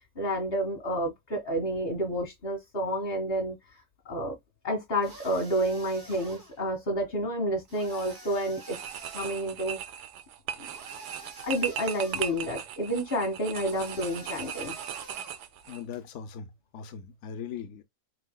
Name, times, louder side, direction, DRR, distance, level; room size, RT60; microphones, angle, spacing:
voice 1, 0.2-3.6 4.1-4.4 4.6-8.8 9.1-9.8 10.6-10.7 11.4-14.8, right 1 dB, 30° left, 2.0 m, -30 dB
sound 1, 5.0-6.6 7.7-9.5 10.7-12.5 13.6-15.5, right 2 dB, 45° right, 2.8 m, -48 dB
sound 2, 7.8-8.2 8.6-15.8, right 9 dB, 70° right, 1.2 m, -38 dB
voice 2, 15.7-16.5 16.7-17.8, left 7 dB, 70° left, 0.6 m, -39 dB
4.9 x 4.6 x 2.2 m
omnidirectional pair, 2.0 m